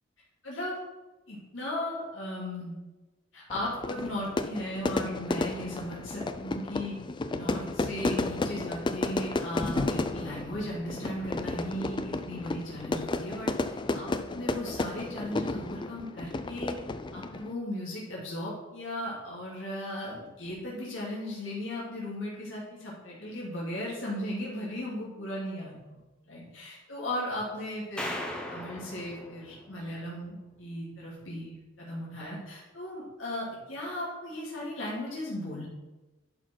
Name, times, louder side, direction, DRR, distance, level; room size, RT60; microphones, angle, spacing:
voice 1, 0.4-0.8 1.3-2.8 3.3-7.0 7.3-16.8 17.1-28.1 28.5-35.7, left 1 dB, 80° left, -6 dB, 2.6 m, -37 dB
Fire / Fireworks, 3.5-17.5, left 2 dB, 25° left, 0.4 m, -33 dB
sound 1, 28.0-30.3, left 1 dB, 5° left, 0.9 m, -38 dB
11.5 x 4.4 x 4.5 m, 1.1 s
head